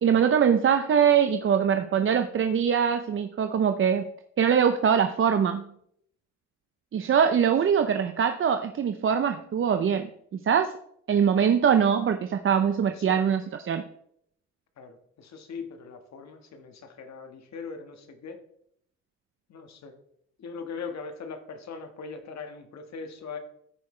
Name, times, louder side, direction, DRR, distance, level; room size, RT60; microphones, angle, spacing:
voice 1, 0.0-4.1 4.4-5.7 6.9-10.7 11.1-13.8, right 7 dB, 45° right, 8 dB, 0.6 m, -23 dB
voice 2, 12.9-13.5 14.8-18.4 19.5-19.9 20.4-23.4, left 5 dB, 65° left, 6 dB, 1.5 m, -40 dB
14.0 x 5.8 x 3.2 m, 0.71 s
cardioid pair, 90°, 30 cm